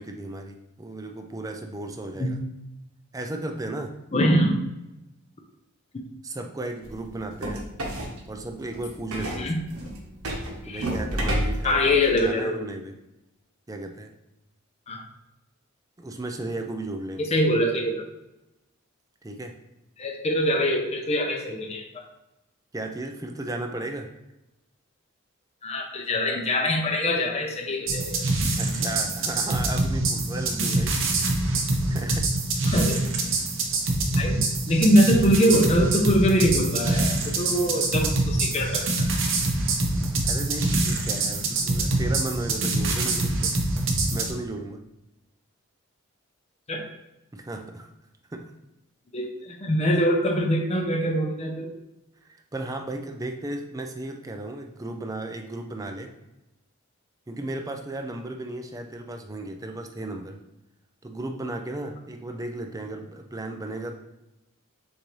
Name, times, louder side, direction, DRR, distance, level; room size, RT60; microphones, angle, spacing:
voice 1, 0.0-2.4 3.1-4.0 6.2-7.7 8.3-9.5 10.6-11.8 12.2-12.9 13.7-14.1 16.0-17.3 19.2-19.6 22.7-24.1 28.6-31.0 31.9-32.3 39.9-43.6 44.1-44.8 47.3-47.9 48.3-48.5 52.3-56.1 57.3-60.4 61.0-63.9, right 2 dB, 15° right, 4 dB, 0.4 m, -35 dB
voice 2, 4.1-4.6 9.2-9.6 10.6-10.9 11.6-12.6 14.9-15.0 17.2-18.0 20.0-22.1 25.6-28.2 32.7-33.0 34.1-34.4 34.7-39.1 46.7-46.8 49.1-51.7, equal, 30° left, 1 dB, 0.6 m, -23 dB
sound 1, 6.8-12.2, right 1 dB, 85° right, 1.1 m, -32 dB
sound 2, 27.9-44.3, right 2 dB, 60° right, 0.8 m, -25 dB
6.5 x 2.6 x 3.1 m, 0.93 s
head